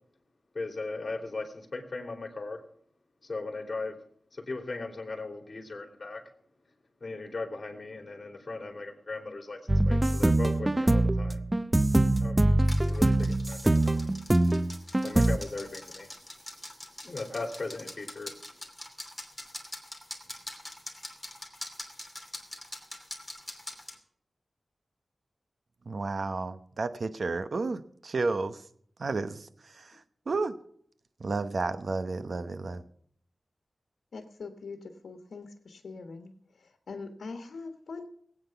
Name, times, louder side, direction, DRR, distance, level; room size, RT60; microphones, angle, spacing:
voice 1, 0.5-2.6 3.2-4.0 4.3-6.2 7.0-11.4 12.2-14.0 15.0-16.1 17.0-18.3, left 3 dB, 45° left, 3 dB, 2.9 m, -38 dB
sound 1, 9.7-15.4, right 1 dB, 25° right, 0.6 m, -24 dB
sound 2, 12.6-24.0, left 1 dB, 10° left, 2.9 m, -44 dB
voice 2, 25.9-28.6 29.0-30.5 31.2-32.8, right 3 dB, 65° right, 11 dB, 0.9 m, -32 dB
voice 3, 34.1-34.8 35.0-36.3 36.9-38.1, left 4 dB, 85° left, 4 dB, 1.3 m, -42 dB
19.5 x 8.9 x 5.8 m, 0.64 s
wide cardioid pair, 75°, 0 cm